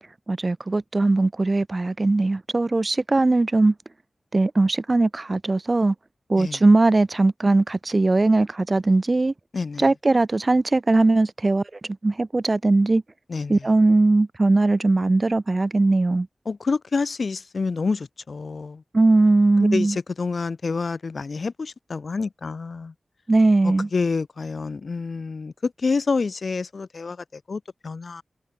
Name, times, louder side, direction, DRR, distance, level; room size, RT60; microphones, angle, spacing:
voice 1, 0.3-3.7 4.3-5.9 6.3-9.3 9.8-11.6 12.0-13.0 13.5-16.3 18.9-20.0 23.3-23.9, right 2 dB, 35° right, 0.4 m, -19 dB
voice 2, 9.5-9.9 13.3-13.6 16.5-18.8 19.6-22.9 23.6-28.2, left 4 dB, 65° left, 2.1 m, -28 dB
wide cardioid pair, 90°, 0 cm